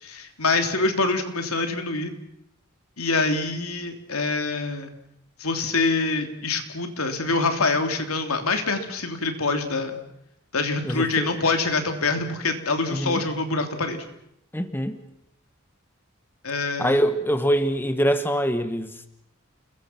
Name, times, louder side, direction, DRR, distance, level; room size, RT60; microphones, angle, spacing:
voice 1, 0.0-2.1 3.0-4.9 5.4-10.0 10.5-14.0 16.4-17.0, left 3 dB, 90° left, 6 dB, 3.3 m, -25 dB
voice 2, 10.8-11.3 12.9-13.2 14.5-15.0 16.8-19.1, equal, 10° left, 9 dB, 1.3 m, -24 dB
30.0 x 22.0 x 6.0 m, 0.75 s
head